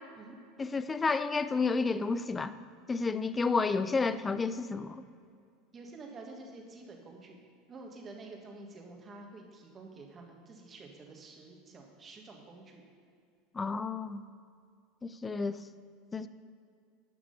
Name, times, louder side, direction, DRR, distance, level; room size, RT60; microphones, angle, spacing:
voice 1, 0.6-2.5 2.9-5.0 13.5-14.2 15.0-15.6 16.1-16.3, left 4 dB, 20° left, 13 dB, 0.4 m, -31 dB
voice 2, 5.7-7.4 7.7-12.8, right 3 dB, 30° right, 1 dB, 1.7 m, -49 dB
10.5 x 5.9 x 5.5 m, 2.3 s
supercardioid pair, 105°, 0 cm